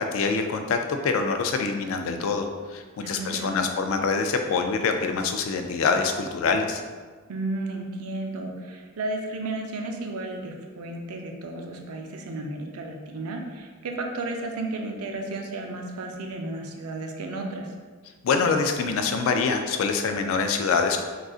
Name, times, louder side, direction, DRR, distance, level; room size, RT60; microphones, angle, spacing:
voice 1, 0.0-6.8 18.2-21.0, left 4 dB, 65° left, 6 dB, 0.3 m, -25 dB
voice 2, 3.0-3.6 7.3-17.7, right 2 dB, 80° right, 2 dB, 0.5 m, -33 dB
3.8 x 2.4 x 2.4 m, 1.4 s
head